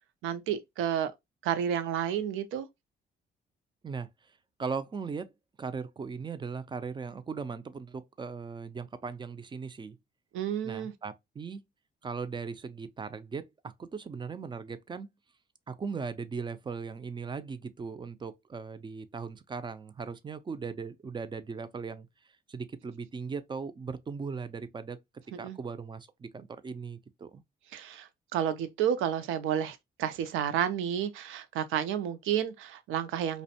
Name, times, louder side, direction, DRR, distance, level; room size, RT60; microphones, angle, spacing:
voice 1, 0.2-1.1 1.4-2.7 10.3-10.9 25.3-25.6 27.7-33.4, right 9 dB, 85° right, 0.4 m, -31 dB
voice 2, 4.6-5.3 5.6-10.0 10.6-11.6 12.0-15.1 15.7-22.1 22.5-25.0 25.4-27.4, right 5 dB, 25° right, 0.3 m, -38 dB
2.5 x 2.1 x 2.6 m
cardioid pair, 90°, 20 cm